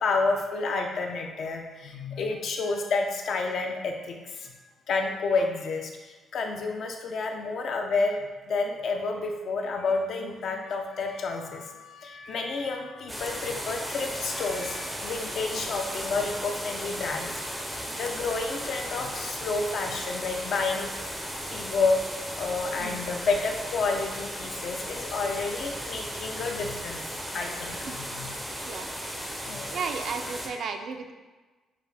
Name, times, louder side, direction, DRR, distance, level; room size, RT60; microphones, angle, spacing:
voice 1, 0.0-4.2 4.9-5.9 6.3-8.2 8.5-11.6 12.0-17.3 18.0-20.9 21.5-22.0 22.4-27.0 27.3-28.4 29.5-29.6, left 4 dB, 55° left, 3 dB, 0.5 m, -29 dB
sound 1, 13.1-30.5, equal, 5° right, 0.5 m, -36 dB
voice 2, 29.7-31.1, right 5 dB, 55° right, 6 dB, 0.4 m, -35 dB
6.4 x 2.4 x 3.4 m, 1.3 s
cardioid pair, 160°, 0 cm